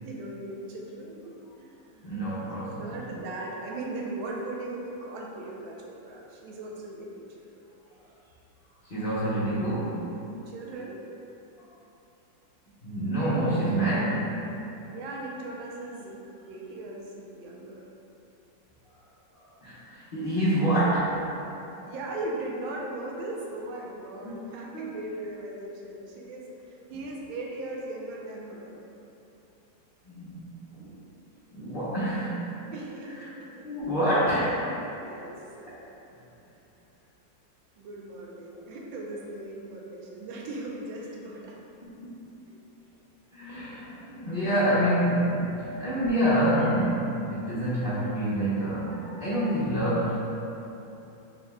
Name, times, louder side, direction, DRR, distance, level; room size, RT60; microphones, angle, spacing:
voice 1, 0.0-2.2 2.8-7.5 10.5-11.0 14.9-16.2 16.4-17.9 21.9-28.8 32.7-33.7 34.9-35.7 37.7-41.6, right 2 dB, 85° right, -2 dB, 1.4 m, -38 dB
voice 2, 2.0-3.0 8.8-10.1 12.8-14.4 19.3-21.2 24.2-24.5 24.7-24.9 30.1-30.9 31.5-32.4 33.1-33.2 33.6-34.8 35.7-35.8 42.0-42.2 43.3-50.2, right 1 dB, 90° left, -11 dB, 0.4 m, -27 dB
5.2 x 2.2 x 3.5 m, 2.9 s
omnidirectional pair, 2.1 m